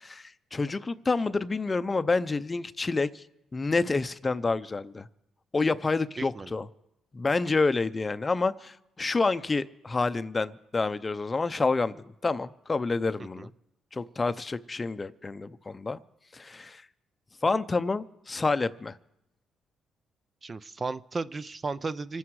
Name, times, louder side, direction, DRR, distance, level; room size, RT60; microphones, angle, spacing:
voice 1, 0.0-3.2 3.5-5.1 5.5-6.7 7.1-13.5 13.9-16.0 16.3-16.8 17.4-18.9, left 3 dB, 25° left, 12 dB, 0.6 m, -28 dB
voice 2, 6.2-6.5 13.4-13.5 20.4-22.2, right 3 dB, 30° right, 13 dB, 0.5 m, -34 dB
26.5 x 9.6 x 4.8 m, 0.85 s
cardioid pair, 90°, 0 cm